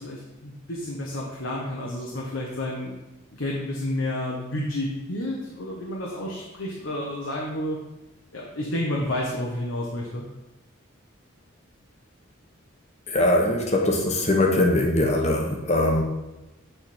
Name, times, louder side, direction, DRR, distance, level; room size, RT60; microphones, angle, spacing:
voice 1, 0.0-2.9 3.3-7.8 8.3-10.2, left 1 dB, 75° left, -3 dB, 1.1 m, -30 dB
voice 2, 13.1-16.0, left 1 dB, 35° left, 1 dB, 1.1 m, -21 dB
9.1 x 3.8 x 4.4 m, 1.0 s
head